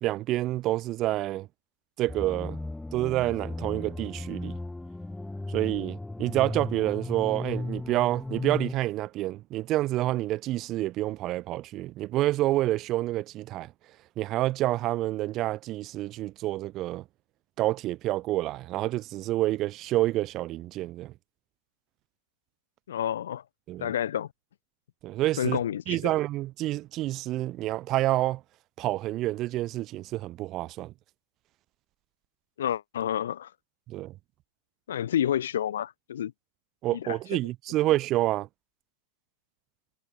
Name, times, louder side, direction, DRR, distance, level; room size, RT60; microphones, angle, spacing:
voice 1, 0.0-1.5 2.0-2.6 2.9-4.6 5.5-13.7 14.2-17.0 17.6-21.1 23.7-23.9 25.0-25.6 25.9-28.4 28.8-30.9 33.9-34.1 36.8-38.5, right 16 dB, 35° right, 0.9 m, -28 dB
sound 1, 2.1-8.7, left 2 dB, 5° left, 1.5 m, -35 dB
voice 2, 22.9-23.4 23.8-24.3 25.4-26.0 32.6-33.5 34.9-36.3 36.9-37.1, left 10 dB, 65° left, 1.1 m, -29 dB
figure-of-eight pair, 90°, 0 cm